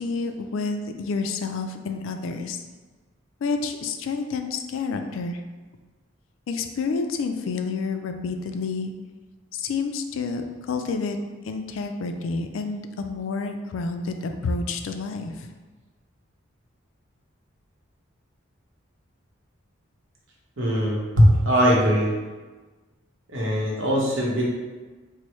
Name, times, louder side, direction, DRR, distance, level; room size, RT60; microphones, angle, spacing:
voice 1, 0.0-2.6 3.4-5.4 6.5-8.9 9.5-11.2 11.4-15.5, left 4 dB, 75° left, 6 dB, 0.3 m, -29 dB
voice 2, 20.6-22.1 23.3-24.4, equal, 70° right, -4 dB, 0.9 m, -20 dB
4.4 x 2.1 x 3.0 m, 1.3 s
head